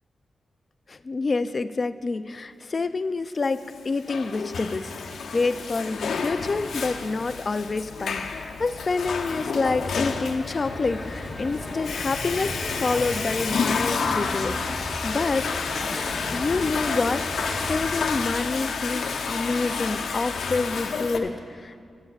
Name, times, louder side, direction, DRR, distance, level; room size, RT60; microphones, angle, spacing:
voice 1, 0.9-4.9 5.3-15.7 16.3-21.9, left 3 dB, 35° left, 11 dB, 0.3 m, -28 dB
Water / Toilet flush, 3.7-21.2, left 5 dB, 90° left, 0.7 m, -30 dB
sound 1, 10.4-18.1, left 1 dB, 15° left, 0.9 m, -35 dB
17.0 x 11.0 x 2.4 m, 2.2 s
wide cardioid pair, 150°, 0 cm